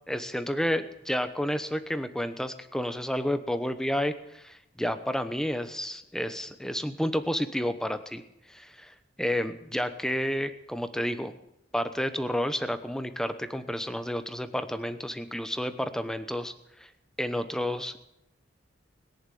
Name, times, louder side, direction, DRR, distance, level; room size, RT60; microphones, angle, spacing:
voice 1, 0.1-8.2 8.5-11.3 11.7-16.5 16.8-16.9 17.2-18.1, equal, 5° left, 10 dB, 0.9 m, -31 dB
21.0 x 7.4 x 9.2 m, 0.83 s
head